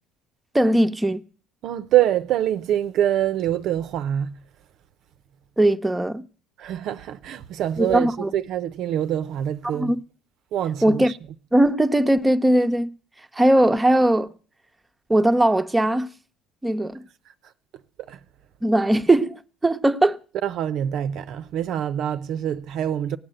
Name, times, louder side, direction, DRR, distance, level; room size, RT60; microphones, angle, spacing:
voice 1, 0.5-1.2 5.6-6.2 7.8-8.3 9.7-10.0 10.8-11.1 11.5-12.9 13.3-14.3 15.1-16.1 16.6-17.0 18.6-20.2, right 1 dB, 10° right, 0.8 m, -19 dB
voice 2, 1.6-4.3 6.6-9.9 10.5-11.2 18.0-18.2 20.4-23.2, right 11 dB, 65° right, 0.6 m, -25 dB
17.0 x 8.8 x 7.8 m
supercardioid pair, 90°, 0 cm